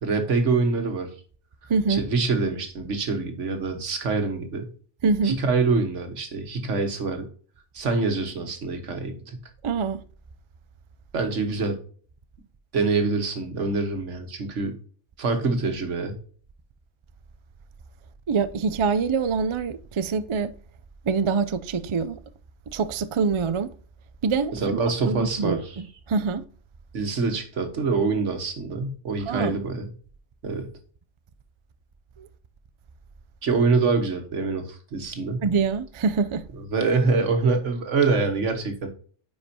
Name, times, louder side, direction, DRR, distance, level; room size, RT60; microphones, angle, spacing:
voice 1, 0.0-1.1 1.9-4.7 5.2-7.3 7.7-9.4 11.1-11.7 12.7-14.7 15.2-16.1 24.5-25.8 26.9-29.9 30.4-30.7 33.4-35.4 36.7-38.9, right 4 dB, 80° right, 1.7 m, -25 dB
voice 2, 1.7-2.0 5.0-5.4 9.6-10.0 18.3-20.5 21.1-22.2 22.7-23.7 24.2-24.5 25.1-26.4 29.3-29.6 32.2-32.3 35.4-36.4, right 5 dB, 55° right, 0.3 m, -25 dB
9.6 x 4.9 x 2.8 m
omnidirectional pair, 1.2 m